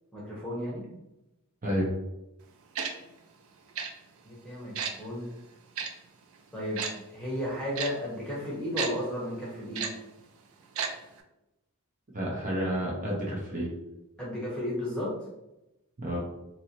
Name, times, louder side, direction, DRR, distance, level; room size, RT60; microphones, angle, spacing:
voice 1, 0.1-0.9 4.2-5.3 6.5-6.9 7.1-9.9 14.2-15.1, left 1 dB, 5° left, -6 dB, 0.9 m, -34 dB
Tick-tock, 2.7-2.9 3.7-3.9 4.7-4.9 5.7-5.9 6.8-6.9 7.7-7.9 8.8-8.9 9.7-9.9 10.7-10.9 11.2-11.3, right 6 dB, 65° right, 0.4 m, -31 dB
voice 2, 12.1-13.7 16.0-16.2, equal, 35° right, -4 dB, 0.8 m, -30 dB
2.9 x 2.7 x 2.8 m, 0.92 s
head